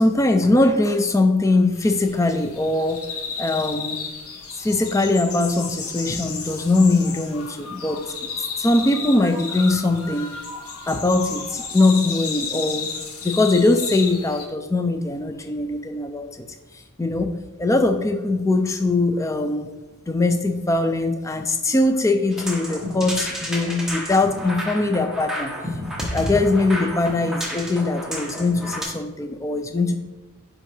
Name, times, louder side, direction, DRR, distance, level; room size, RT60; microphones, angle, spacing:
voice 1, 0.0-3.0 3.4-4.0 4.6-8.2 8.6-10.3 10.9-12.9 13.2-16.5 17.0-19.7 20.1-25.5 26.1-30.0, left 2 dB, 15° left, 7 dB, 0.4 m, -21 dB
sound 1, 1.7-14.5, left 5 dB, 75° left, 1.0 m, -33 dB
sound 2, 22.3-28.9, equal, ahead, 1.0 m, -31 dB
9.3 x 3.7 x 3.3 m, 1.1 s
head